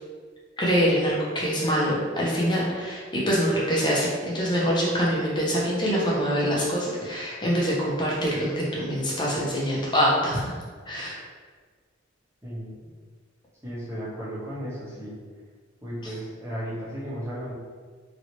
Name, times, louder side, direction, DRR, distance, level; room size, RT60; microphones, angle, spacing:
voice 1, 0.6-10.5 10.9-11.2, equal, 25° left, -5 dB, 0.7 m, -24 dB
voice 2, 12.4-12.9 13.6-15.2 15.8-17.5, equal, 15° right, -10 dB, 1.1 m, -35 dB
2.9 x 2.8 x 2.9 m, 1.6 s
head